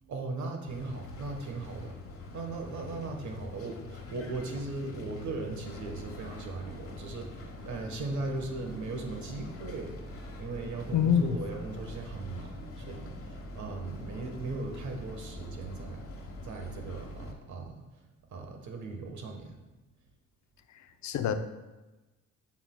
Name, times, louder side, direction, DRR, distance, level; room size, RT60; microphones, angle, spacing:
voice 1, 0.0-17.8 18.3-19.6, right 3 dB, 70° right, 3 dB, 1.3 m, -38 dB
sound 1, 0.7-17.3, left 2 dB, 45° left, 1.2 m, -44 dB
voice 2, 10.9-11.4 21.0-21.3, left 8 dB, 70° left, 8 dB, 0.6 m, -25 dB
9.0 x 7.1 x 2.3 m, 1.1 s
cardioid pair, 90°, 30 cm